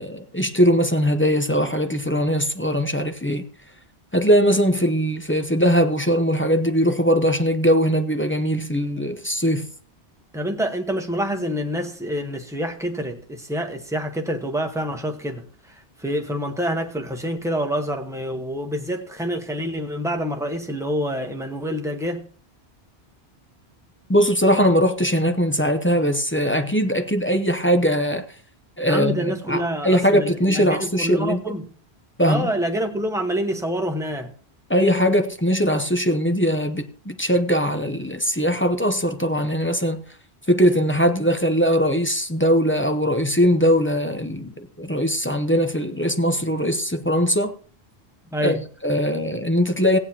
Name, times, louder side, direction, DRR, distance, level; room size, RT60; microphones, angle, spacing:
voice 1, 0.0-3.4 4.1-9.7 24.1-28.2 28.8-31.5 32.2-32.5 34.7-40.0 40.5-47.5 48.4-50.0, equal, 15° left, 0.5 m, -20 dB
voice 2, 10.3-15.4 16.0-22.2 28.9-31.7 32.3-34.3 48.3-48.6, equal, 5° right, 1.0 m, -27 dB
17.0 x 9.0 x 2.8 m
omnidirectional pair, 1.1 m